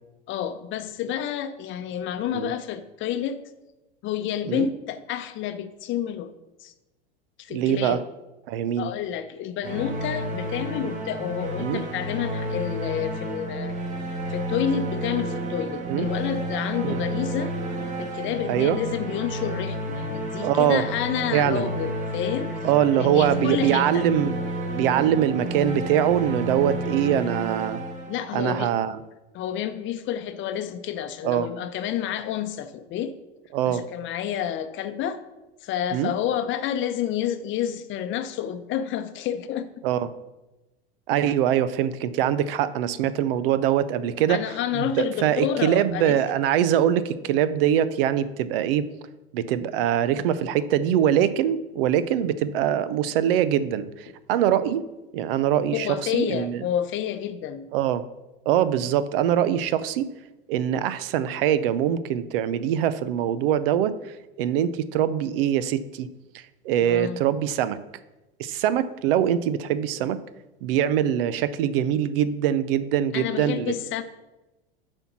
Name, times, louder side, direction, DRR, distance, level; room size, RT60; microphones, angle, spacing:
voice 1, 0.3-3.4 4.0-6.4 6.6-6.7 7.4-8.0 8.8-13.7 14.3-17.5 18.0-22.5 22.9-24.1 28.1-28.7 29.3-33.1 33.7-35.2 35.6-39.7 44.3-46.2 55.7-57.7 66.8-67.2 73.1-74.0, left 9 dB, 40° left, 10 dB, 0.7 m, -29 dB
voice 2, 7.5-8.0 8.5-8.9 11.6-11.8 15.9-16.1 16.8-17.0 18.5-18.8 20.4-20.8 21.3-21.7 22.6-24.3 24.7-27.8 28.3-29.0 31.2-31.5 33.5-33.8 35.9-36.1 39.8-40.1 41.1-44.4 44.7-48.9 49.3-54.8 55.1-56.6 57.7-58.0 58.5-60.1 60.5-63.9 64.4-66.1 66.3-67.8 68.4-70.2 70.6-73.7, right 10 dB, 65° right, 15 dB, 0.6 m, -23 dB
sound 1, 9.6-28.5, right 1 dB, 25° right, 1.5 m, -31 dB
7.8 x 4.5 x 6.0 m, 1.0 s
hypercardioid pair, 100°, 30 cm